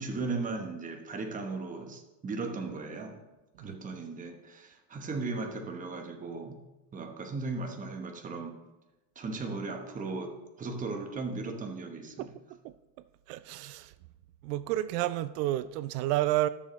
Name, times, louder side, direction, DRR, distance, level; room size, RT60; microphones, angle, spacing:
voice 1, 0.0-3.2 3.6-6.6 6.9-8.6 9.2-12.3, right 3 dB, 15° right, 0.9 m, -37 dB
voice 2, 12.2-12.8 13.3-13.9 14.4-16.5, right 15 dB, 90° right, 0.6 m, -31 dB
14.0 x 6.6 x 3.1 m
cardioid pair, 150°, 46 cm